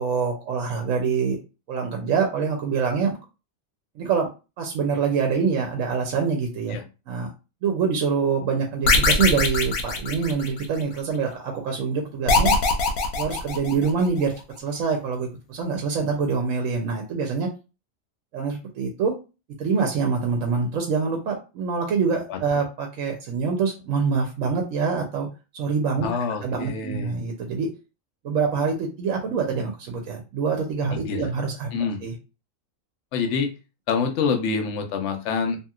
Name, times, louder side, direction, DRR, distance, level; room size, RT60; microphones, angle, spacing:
voice 1, 0.0-1.4 1.7-3.1 4.0-4.3 4.6-6.8 7.1-7.3 7.6-12.5 13.2-17.5 18.3-19.1 19.6-25.3 25.5-26.1 26.4-27.7 28.2-32.1, right 5 dB, 75° right, 2 dB, 1.0 m, -25 dB
sound 1, 8.9-10.8 12.3-14.1, left 3 dB, 90° left, 1.1 m, -22 dB
voice 2, 26.0-27.1 31.0-31.3 31.7-32.0 33.1-33.5 33.9-35.6, left 5 dB, 65° left, 5 dB, 0.9 m, -26 dB
2.9 x 2.8 x 2.3 m, 0.31 s
omnidirectional pair, 1.4 m